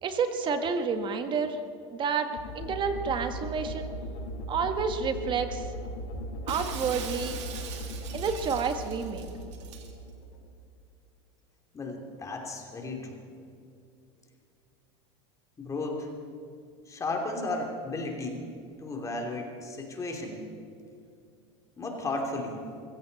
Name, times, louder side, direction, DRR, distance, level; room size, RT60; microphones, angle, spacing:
voice 1, 0.0-1.6 1.9-3.9 4.5-5.7 6.5-7.4 8.1-9.3, right 5 dB, 30° right, 8 dB, 1.5 m, -29 dB
sound 1, 2.3-10.5, equal, 75° left, 4.9 m, -38 dB
Shatter, 6.5-9.9, right 7 dB, 80° right, 2.1 m, -41 dB
voice 2, 11.7-13.2 15.6-16.1 16.9-18.4 18.8-20.4 21.8-22.6, left 2 dB, 20° left, 2 dB, 2.9 m, -34 dB
22.0 x 16.0 x 4.1 m, 2.5 s
supercardioid pair, 115°, 15 cm